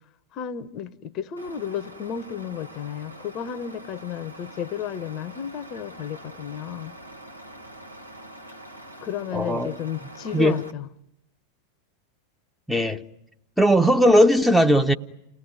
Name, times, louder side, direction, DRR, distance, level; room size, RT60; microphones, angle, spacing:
voice 1, 0.3-6.9 9.0-10.9, left 9 dB, 35° left, 0.9 m, -32 dB
Truck, 1.4-10.7, right 1 dB, 90° right, 1.7 m, -44 dB
voice 2, 9.3-9.8 10.3-10.6 12.7-13.0 13.6-14.9, equal, ahead, 1.0 m, -18 dB
30.0 x 18.0 x 9.7 m
figure-of-eight pair, 90°, 0 cm